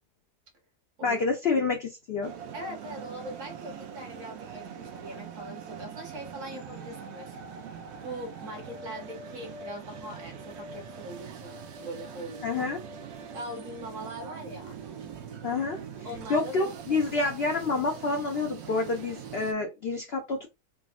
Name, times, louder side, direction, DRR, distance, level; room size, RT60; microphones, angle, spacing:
voice 1, 1.0-2.3 12.4-12.8 15.4-15.8 16.3-20.5, left 3 dB, 70° left, 0.5 m, -28 dB
sound 1, 2.2-19.5, right 6 dB, 75° right, 0.6 m, -42 dB
voice 2, 2.5-7.4 8.0-12.6 13.3-14.8 16.0-17.1, right 1 dB, 55° right, 1.2 m, -41 dB
3.4 x 2.0 x 2.3 m
omnidirectional pair, 1.7 m